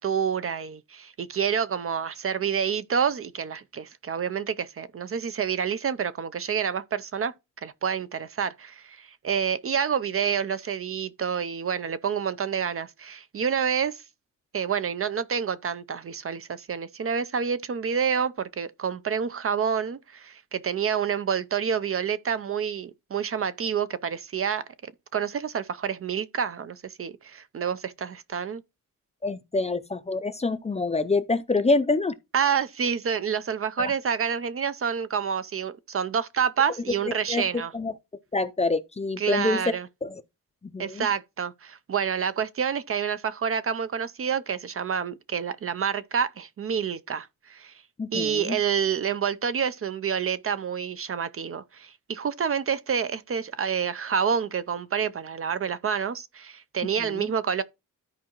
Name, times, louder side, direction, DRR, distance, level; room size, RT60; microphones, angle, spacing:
voice 1, 0.0-7.3 7.6-14.0 14.5-28.6 32.3-37.7 39.2-39.9 40.8-47.7 48.1-57.6, right 7 dB, 40° right, 0.5 m, -28 dB
voice 2, 29.2-32.1 33.8-33.9 37.3-37.4 37.7-37.9 38.3-39.6 40.0-40.1 40.6-41.1 48.0-48.6 57.0-57.3, left 3 dB, 20° left, 0.5 m, -26 dB
13.5 x 4.7 x 2.9 m
wide cardioid pair, 135°, 34 cm